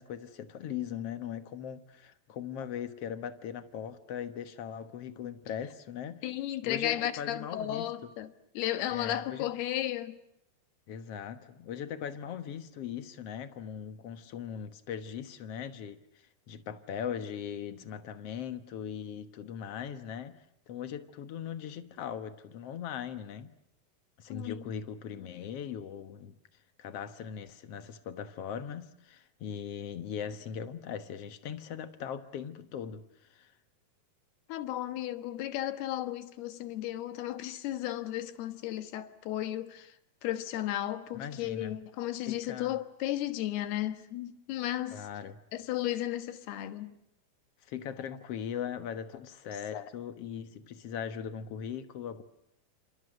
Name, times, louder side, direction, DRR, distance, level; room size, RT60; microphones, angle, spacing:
voice 1, 0.0-6.2 6.6-8.1 8.9-9.5 10.9-23.5 24.2-26.3 26.8-33.5 41.1-41.8 42.3-42.8 44.9-45.4 47.6-52.2, left 8 dB, 60° left, 1.6 m, -39 dB
voice 2, 6.2-8.3 8.6-10.2 24.3-24.6 34.5-39.9 40.2-45.1 45.5-47.0 49.7-49.8, left 13 dB, 85° left, 3.4 m, -34 dB
29.0 x 27.5 x 6.4 m
omnidirectional pair, 4.5 m